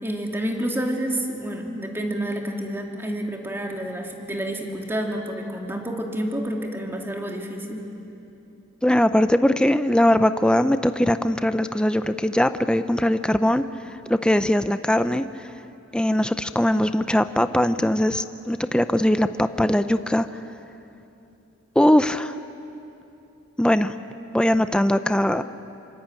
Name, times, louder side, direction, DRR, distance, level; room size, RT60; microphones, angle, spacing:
voice 1, 0.0-7.9, right 1 dB, 10° right, 1 dB, 2.8 m, -29 dB
voice 2, 8.8-13.7 14.1-15.5 15.9-20.3 21.8-22.3 23.6-24.0 24.3-25.4, left 1 dB, 5° left, 10 dB, 0.6 m, -20 dB
27.0 x 24.5 x 9.0 m, 2.8 s
head